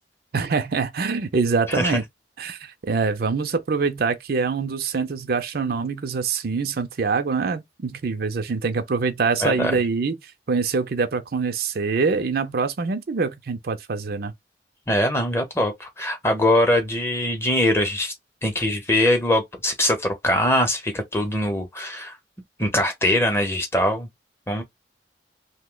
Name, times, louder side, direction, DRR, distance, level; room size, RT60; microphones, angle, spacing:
voice 1, 0.3-2.0 2.4-10.2 10.5-14.3, right 4 dB, 60° right, 0.5 m, -24 dB
voice 2, 1.7-2.0 9.4-9.7 14.9-18.1 18.4-22.2 22.6-24.1 24.5-24.6, left 1 dB, 15° left, 0.7 m, -22 dB
2.7 x 2.1 x 3.7 m
head